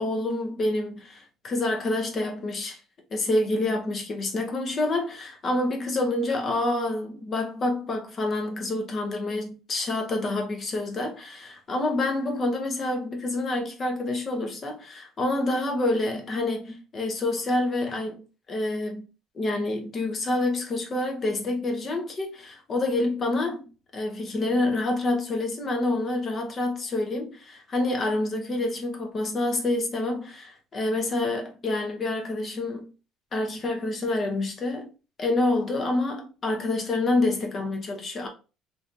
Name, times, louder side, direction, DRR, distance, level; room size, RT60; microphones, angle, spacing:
voice 1, 0.0-2.8 3.1-18.2 18.5-19.0 19.3-23.7 23.9-32.9 33.3-34.9 35.2-38.3, left 2 dB, 30° left, 0.8 m, -27 dB
3.3 x 2.7 x 2.6 m
cardioid pair, 160°, 0 cm